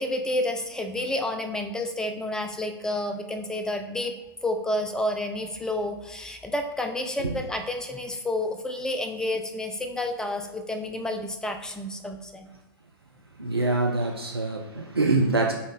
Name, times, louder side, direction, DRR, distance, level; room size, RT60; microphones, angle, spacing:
voice 1, 0.0-4.1 4.4-12.5, left 1 dB, 5° left, 5 dB, 0.4 m, -30 dB
voice 2, 13.4-15.5, right 2 dB, 90° right, 1 dB, 0.4 m, -25 dB
4.1 x 3.0 x 3.7 m, 0.97 s
figure-of-eight pair, 95°, 13 cm